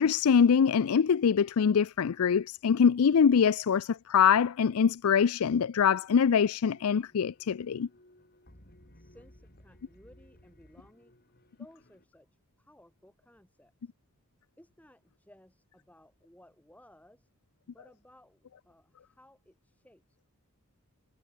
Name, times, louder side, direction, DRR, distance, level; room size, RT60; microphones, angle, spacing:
voice 1, 0.0-7.9, left 7 dB, 75° left, 0.4 m, -24 dB
sound 1, 6.6-12.0, left 1 dB, 45° left, 5.3 m, -59 dB
voice 2, 8.9-11.1 11.6-12.3 12.6-13.7 14.6-17.3 17.7-20.3, left 1 dB, 5° left, 6.5 m, -59 dB
head